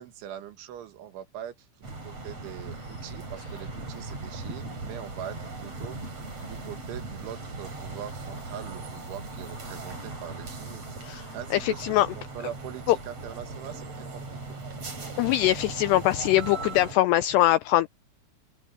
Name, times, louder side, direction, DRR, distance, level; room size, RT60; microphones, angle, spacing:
voice 1, 0.0-6.2 6.5-14.4, right 11 dB, 80° right, 4.1 m, -42 dB
sound 1, 1.8-16.9, right 3 dB, 35° right, 6.4 m, -39 dB
voice 2, 11.5-12.1 12.9-13.0 15.2-17.9, left 15 dB, 90° left, 2.4 m, -22 dB
open air
omnidirectional pair, 5.5 m